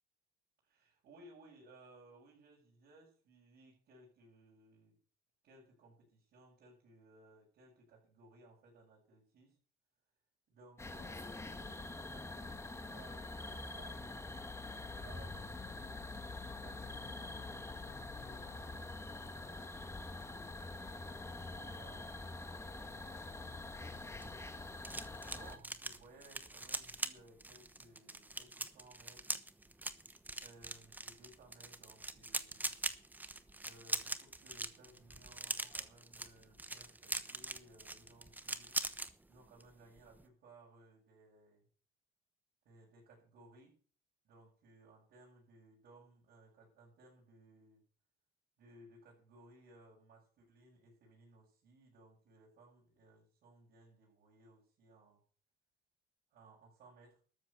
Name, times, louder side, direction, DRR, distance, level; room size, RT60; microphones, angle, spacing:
voice 1, 0.6-5.0 5.4-9.6 10.5-14.1 14.7-19.8 21.1-24.6 25.3-29.3 30.4-32.7 33.6-38.8 39.3-41.7 42.6-43.8 44.2-47.8 48.6-55.2 56.3-57.2, right 2 dB, 65° right, -6 dB, 7.3 m, -62 dB
sound 1, 10.8-25.6, left 2 dB, 15° left, 1.8 m, -45 dB
sound 2, 23.9-39.1 39.4-39.7 40.0-40.2, right 2 dB, 10° right, 1.1 m, -42 dB
13.0 x 8.0 x 7.0 m, 0.40 s
cardioid pair, 110°, 17 cm